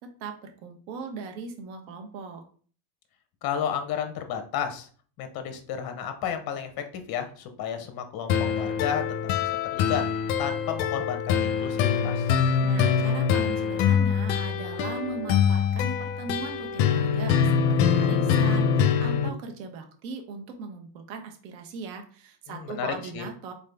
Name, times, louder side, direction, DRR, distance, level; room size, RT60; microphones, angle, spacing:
voice 1, 0.0-2.4 12.6-23.5, right 4 dB, 90° right, 4 dB, 1.2 m, -39 dB
voice 2, 3.4-4.9 5.2-9.0 9.4-10.1 10.4-12.3 22.5-23.3, left 8 dB, 45° left, 7 dB, 1.0 m, -32 dB
sound 1, 8.3-19.3, left 7 dB, 65° left, 0.7 m, -24 dB
4.0 x 3.7 x 3.5 m, 0.44 s
supercardioid pair, 130°, 50 cm